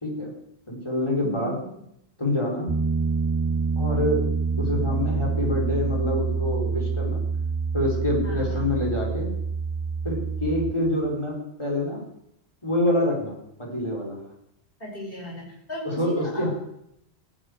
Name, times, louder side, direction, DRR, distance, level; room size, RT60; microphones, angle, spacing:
voice 1, 0.7-1.6 2.2-2.7 3.8-4.2 4.6-7.2 7.7-9.3 10.0-12.0 12.6-14.2 15.8-16.5, left 1 dB, 25° left, -2 dB, 4.6 m, -26 dB
voice 2, 1.2-1.7 8.2-8.7 14.8-16.5, equal, 60° left, -3 dB, 6.3 m, -37 dB
Piano, 2.7-10.7, right 5 dB, 20° right, 0.7 m, -26 dB
15.5 x 10.5 x 8.2 m, 0.79 s
omnidirectional pair, 1.1 m